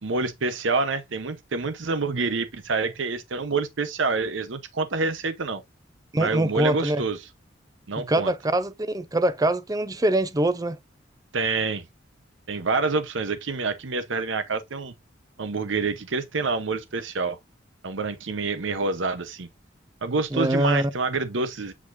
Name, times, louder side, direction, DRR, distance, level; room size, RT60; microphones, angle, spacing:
voice 1, 0.0-5.6 6.2-7.3 7.9-8.3 11.3-11.8 12.5-14.9 15.4-17.4 17.8-19.5 20.0-21.7, right 4 dB, 75° right, 0.8 m, -27 dB
voice 2, 6.1-7.0 8.1-10.8 20.3-20.9, right 1 dB, 20° right, 0.5 m, -23 dB
8.2 x 5.0 x 2.5 m
head